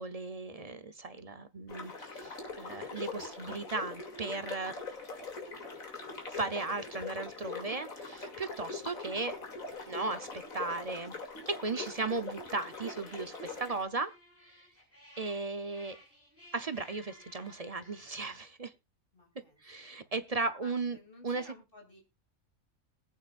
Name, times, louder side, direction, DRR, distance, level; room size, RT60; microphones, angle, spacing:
voice 1, 0.0-4.8 6.3-9.3 9.9-11.1 11.5-14.1 14.5-14.6 15.2-16.0 16.5-18.7 19.6-21.0 21.2-21.5, right 3 dB, 35° right, 0.7 m, -36 dB
sound 1, 1.7-13.8, left 4 dB, 70° left, 3.1 m, -42 dB
sound 2, 13.0-18.2, left 1 dB, 10° left, 5.9 m, -58 dB
voice 2, 19.1-19.6 19.9-20.1 20.6-22.0, left 2 dB, 40° left, 3.3 m, -56 dB
21.0 x 8.6 x 2.4 m
omnidirectional pair, 1.5 m